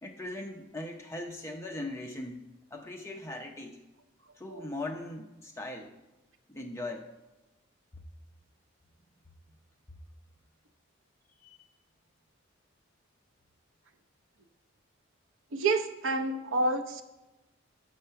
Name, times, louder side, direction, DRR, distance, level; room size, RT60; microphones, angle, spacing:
voice 1, 0.0-3.8 4.3-5.9 6.5-7.1 11.4-11.6, left 2 dB, 15° left, 2 dB, 0.7 m, -40 dB
voice 2, 15.5-17.0, right 3 dB, 70° right, 6 dB, 0.7 m, -28 dB
7.8 x 6.2 x 5.7 m, 1.0 s
head